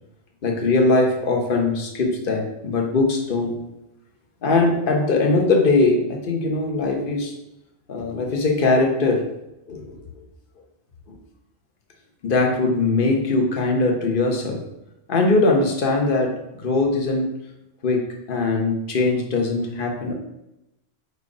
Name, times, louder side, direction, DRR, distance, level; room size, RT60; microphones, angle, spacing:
voice 1, 0.4-3.5 4.4-7.3 7.9-9.2 9.7-9.9 12.2-14.6 15.1-16.3 16.6-17.3 17.8-18.0 18.3-20.1, left 3 dB, 45° left, 1 dB, 1.2 m, -20 dB
4.8 x 4.7 x 4.8 m, 0.89 s
omnidirectional pair, 1.3 m